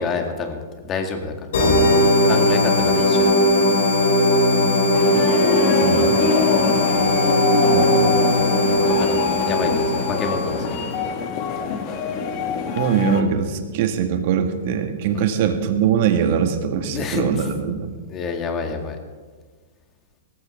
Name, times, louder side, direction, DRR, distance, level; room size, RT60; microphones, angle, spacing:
voice 1, 0.0-1.3 2.2-3.3 7.0-7.2 8.7-10.8 15.1-15.2 16.9-17.5 18.1-19.0, left 4 dB, 30° left, 4 dB, 2.0 m, -28 dB
sound 1, 1.5-10.9, left 1 dB, 75° left, 3.3 m, -18 dB
sound 2, 4.9-13.2, left 5 dB, 45° left, 1.6 m, -25 dB
voice 2, 5.8-6.2 7.7-8.2 12.8-17.9, right 7 dB, 55° right, 6 dB, 1.7 m, -22 dB
18.5 x 14.5 x 3.6 m, 1.4 s
hypercardioid pair, 130°, 0 cm